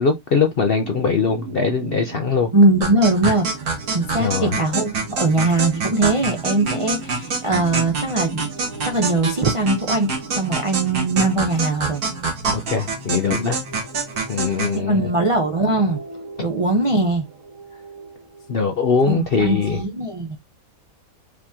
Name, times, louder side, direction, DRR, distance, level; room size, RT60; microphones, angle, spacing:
voice 1, 0.0-2.5 3.2-3.3 4.2-4.6 12.5-13.6 14.3-15.1 18.5-19.8, left 5 dB, 60° left, 0.6 m, -21 dB
sound 1, 0.8-19.8, right 3 dB, 55° right, 1.5 m, -38 dB
voice 2, 2.5-3.5 3.9-8.4 8.8-12.0 14.7-16.0 16.4-17.3 19.1-20.4, right 2 dB, 40° right, 0.5 m, -20 dB
sound 2, 2.8-14.8, right 4 dB, 70° right, 1.9 m, -26 dB
5.1 x 2.9 x 3.5 m
omnidirectional pair, 1.7 m